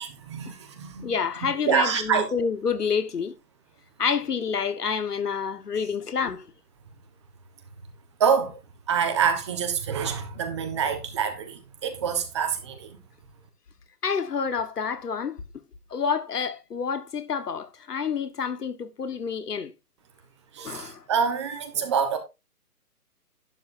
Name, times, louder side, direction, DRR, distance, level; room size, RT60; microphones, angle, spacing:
voice 1, 0.3-1.1 1.7-2.3 8.2-8.5 8.9-12.9 20.6-22.2, right 7 dB, 20° right, 1.2 m, -26 dB
voice 2, 1.0-3.3 4.0-6.5 14.0-15.4 15.9-19.7 20.6-21.0, left 6 dB, 75° left, 1.6 m, -28 dB
11.5 x 10.5 x 2.7 m
hypercardioid pair, 165°, 47 cm